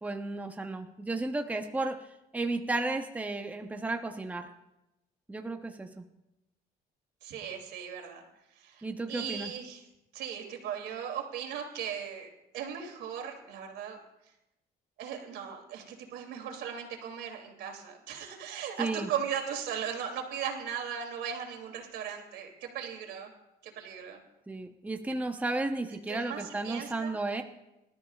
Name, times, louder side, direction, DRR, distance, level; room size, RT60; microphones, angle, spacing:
voice 1, 0.0-2.0 2.3-4.5 5.3-6.0 8.8-9.5 18.8-19.1 24.5-27.4, right 2 dB, 10° right, 4 dB, 0.9 m, -33 dB
voice 2, 7.2-8.2 8.5-9.8 10.1-12.3 12.5-14.0 15.0-23.3 23.6-24.2 25.9-27.2, right 8 dB, 80° right, 3 dB, 2.8 m, -38 dB
25.0 x 13.0 x 2.4 m, 0.90 s
cardioid pair, 110°, 17 cm